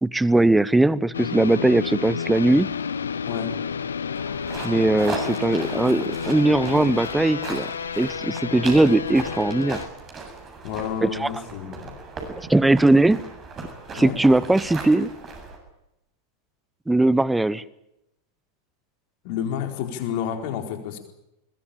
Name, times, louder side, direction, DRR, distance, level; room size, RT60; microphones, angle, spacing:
voice 1, 0.0-2.7 4.6-7.7 8.0-9.8 11.0-11.3 12.3-13.2 13.9-15.1 16.9-17.6, right 2 dB, 5° right, 21 dB, 0.8 m, -19 dB
sound 1, 1.1-9.9, left 6 dB, 70° left, 0.9 m, -30 dB
sound 2, 4.1-15.6, right 4 dB, 25° right, 7.5 m, -37 dB
voice 2, 10.6-11.9 14.0-14.2 19.2-21.0, left 8 dB, 45° left, 5 dB, 4.3 m, -30 dB
22.5 x 21.5 x 8.9 m, 0.86 s
figure-of-eight pair, 90°, 0 cm